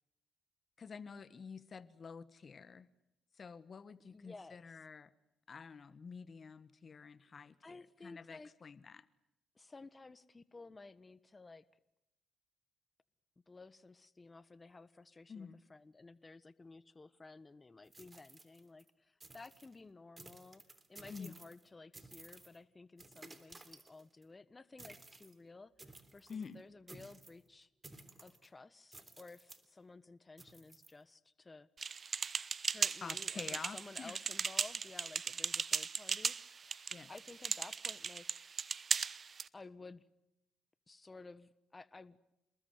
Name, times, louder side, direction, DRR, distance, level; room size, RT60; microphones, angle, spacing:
voice 1, 0.8-2.9 3.4-5.1 5.5-9.1 15.3-15.6 21.1-21.4 26.3-26.6 33.0-34.2 36.9-37.1, left 5 dB, 45° left, 16 dB, 1.3 m, -49 dB
voice 2, 4.1-4.8 7.6-8.5 9.5-11.6 13.5-20.6 20.9-27.7 28.2-31.7 32.7-36.7 37.1-38.4 39.5-40.0 40.9-42.2, left 3 dB, 25° left, 16 dB, 1.3 m, -54 dB
sound 1, 17.9-18.9 19.2-19.7 20.2-21.7 21.9-22.6 23.0-24.2 24.8-25.3 25.8-26.5 26.9-27.4 27.8-28.5 28.9-29.7 30.4-30.9, right 2 dB, 25° right, 3.4 m, -56 dB
sound 2, 31.8-39.5, right 5 dB, 45° right, 1.0 m, -37 dB
29.0 x 20.5 x 9.4 m, 0.87 s
supercardioid pair, 65°, 0 cm